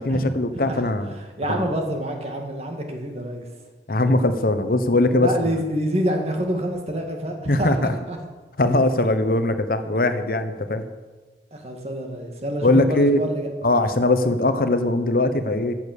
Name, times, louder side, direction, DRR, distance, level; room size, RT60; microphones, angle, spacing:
voice 1, 0.0-1.1 1.5-1.6 3.9-5.3 7.5-7.9 8.6-10.8 12.6-13.2 13.6-15.7, left 2 dB, 55° left, 9 dB, 1.0 m, -20 dB
voice 2, 1.2-3.5 5.2-8.2 11.5-13.5, equal, 35° right, 2 dB, 2.2 m, -27 dB
15.0 x 9.0 x 6.8 m, 1.3 s
head